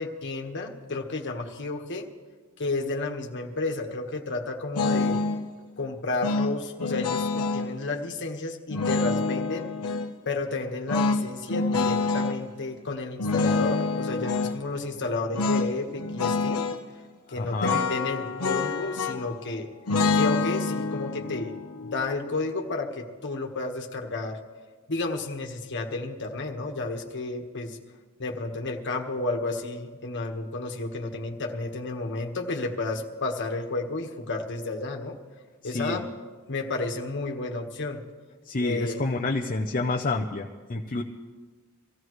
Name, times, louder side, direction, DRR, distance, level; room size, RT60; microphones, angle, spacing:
voice 1, 0.0-2.1 2.6-5.2 5.8-9.7 10.2-16.7 17.3-19.7 20.1-21.6 21.8-24.4 24.9-27.8 28.2-35.2 35.6-36.0 36.5-38.0 38.6-39.0, left 3 dB, 55° left, 2 dB, 1.5 m, -31 dB
sound 1, 4.7-5.4 6.2-7.7 8.7-10.1 10.9-12.4 13.2-14.5 15.3-15.7 16.0-16.8 17.6-19.4 19.9-22.9, left 3 dB, 85° left, 1.0 m, -27 dB
voice 2, 17.3-17.8 35.6-36.0 38.5-41.0, left 3 dB, 40° left, 1 dB, 0.7 m, -29 dB
24.0 x 15.5 x 3.2 m, 1.4 s
head